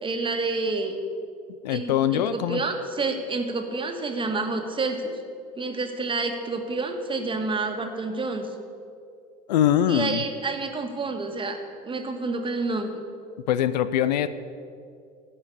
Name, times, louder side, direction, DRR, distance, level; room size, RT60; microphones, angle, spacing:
voice 1, 0.0-1.0 1.7-5.2 5.6-8.5 9.9-11.6 11.8-13.0, right 3 dB, 25° right, 5 dB, 1.6 m, -29 dB
voice 2, 1.6-2.6 9.5-10.2 13.5-14.3, left 10 dB, 80° left, 14 dB, 0.5 m, -22 dB
15.5 x 5.6 x 6.9 m, 2.4 s
hypercardioid pair, 75°, 21 cm